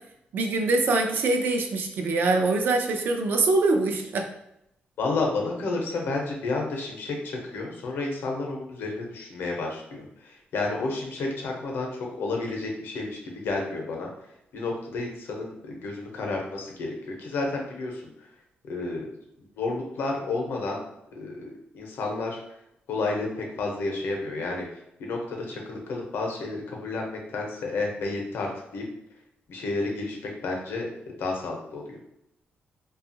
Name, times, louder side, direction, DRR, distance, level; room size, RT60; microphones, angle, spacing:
voice 1, 0.3-4.3, right 3 dB, 65° right, 3 dB, 0.4 m, -24 dB
voice 2, 5.0-14.1 14.5-18.3 18.7-19.1 19.6-20.8 21.1-22.4 22.9-28.8 29.5-30.2 30.4-30.9 31.2-32.0, left 3 dB, 85° left, 0 dB, 0.7 m, -31 dB
2.8 x 2.3 x 2.7 m, 0.81 s
wide cardioid pair, 165°, 4 cm